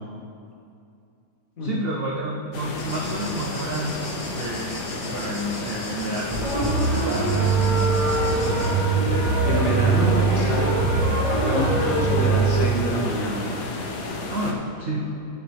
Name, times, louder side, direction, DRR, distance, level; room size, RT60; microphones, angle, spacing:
voice 1, 1.6-3.9 4.3-4.8 5.1-6.3 6.9-7.8 14.3-15.1, right 1 dB, 60° right, -2 dB, 0.6 m, -30 dB
sound 1, 2.5-14.5, left 3 dB, 75° left, 1.4 m, -32 dB
sound 2, 2.8-8.7, left 1 dB, 20° left, 1.9 m, -39 dB
sound 3, 6.3-12.7, right 4 dB, 80° right, 3.0 m, -22 dB
voice 2, 9.4-10.7 11.4-13.4, equal, 55° left, -3 dB, 1.8 m, -26 dB
12.0 x 7.0 x 3.4 m, 2.5 s
omnidirectional pair, 1.8 m